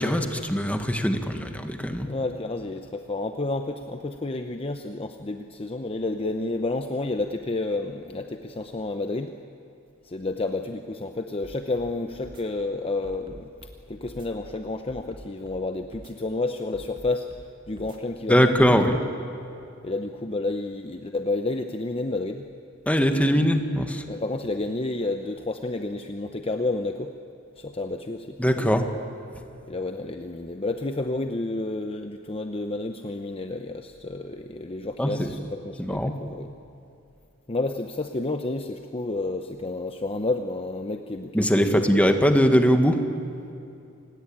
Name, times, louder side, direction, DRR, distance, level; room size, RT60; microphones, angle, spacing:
voice 1, 0.0-2.1 18.3-19.0 22.8-24.0 28.4-28.9 35.0-35.4 35.8-36.1 41.3-43.0, equal, 5° left, 6 dB, 1.6 m, -21 dB
voice 2, 2.0-9.3 10.0-17.3 17.7-18.5 19.8-22.5 23.3-23.5 24.1-27.1 27.6-28.8 29.7-36.5 37.5-42.0, left 2 dB, 25° left, 6 dB, 0.8 m, -30 dB
sound 1, 11.4-11.9 12.2-12.4 13.0-13.8 14.1-14.3 14.9-15.6 15.9-16.1 16.7-17.5 17.8-18.0 18.6-18.7, equal, 25° right, 2.3 m, -46 dB
28.0 x 19.5 x 8.8 m, 2.6 s
head